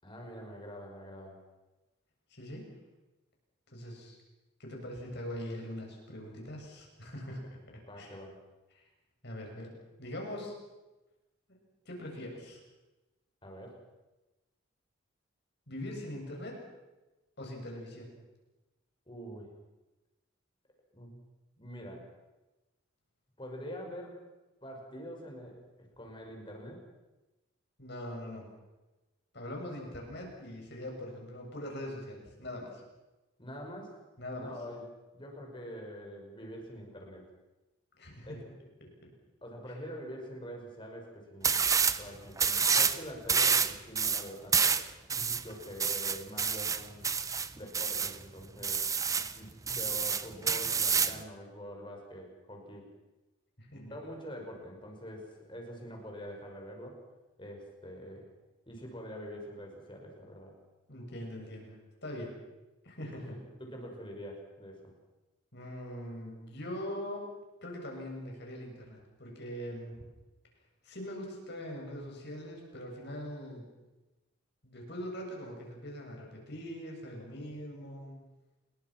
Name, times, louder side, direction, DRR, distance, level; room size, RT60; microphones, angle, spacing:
voice 1, 0.0-1.4 7.9-8.4 13.4-13.8 19.1-19.5 20.9-21.2 21.6-22.1 23.4-24.2 24.6-25.6 26.0-26.8 33.4-34.0 34.3-34.8 35.1-37.3 38.2-38.4 39.4-41.7 42.0-44.8 45.4-47.1 47.5-48.8 49.4-52.9 53.7-57.0 57.4-58.3 58.7-60.5 63.2-64.9, equal, 25° left, 1 dB, 5.6 m, -45 dB
voice 2, 2.3-2.7 3.7-4.2 4.6-8.1 8.7-8.9 9.2-9.7 10.0-10.5 11.8-12.6 15.7-16.6 17.4-18.1 27.8-28.5 29.3-32.8 34.2-34.6 38.0-38.4 38.8-39.1 45.1-45.4 53.6-54.0 60.9-61.8 62.0-62.4 62.8-63.4 65.5-67.3 67.6-70.1 70.8-73.7 74.6-78.3, equal, 55° left, 0 dB, 7.6 m, -42 dB
sound 1, 41.4-42.0 42.4-43.0 43.3-48.2 48.6-49.3 49.7-51.2, right 6 dB, 15° right, 0.8 m, -28 dB
28.5 x 22.0 x 6.1 m, 1.1 s
head